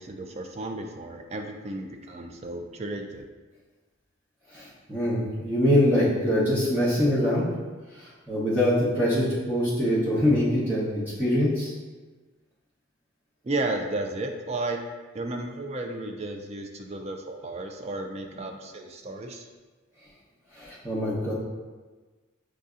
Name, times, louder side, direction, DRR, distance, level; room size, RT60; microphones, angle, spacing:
voice 1, 0.0-3.3 13.4-14.8 15.1-19.4, right 2 dB, 30° right, 4 dB, 0.3 m, -33 dB
voice 2, 4.5-7.5 8.0-11.7 20.6-21.3, left 1 dB, 10° right, -11 dB, 0.8 m, -24 dB
6.4 x 2.7 x 2.4 m, 1.3 s
head